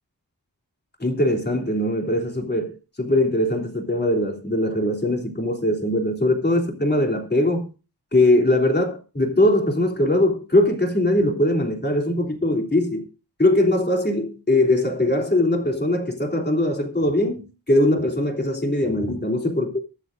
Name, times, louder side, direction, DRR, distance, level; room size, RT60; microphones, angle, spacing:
voice 1, 1.0-7.7 8.1-13.0 13.4-19.7, left 1 dB, 25° left, 3.3 m, -21 dB
23.0 x 7.8 x 2.6 m
wide cardioid pair, 80°, 40 cm